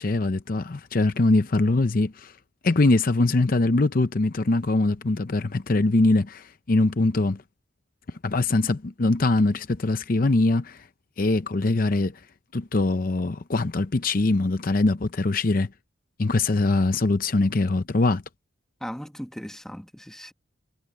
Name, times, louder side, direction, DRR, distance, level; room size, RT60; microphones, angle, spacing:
voice 1, 0.0-2.4 2.6-7.4 8.1-10.9 11.2-12.2 12.5-15.7 16.2-18.2, left 2 dB, 45° left, 0.7 m, -22 dB
voice 2, 18.8-20.3, equal, 5° left, 1.5 m, -37 dB
head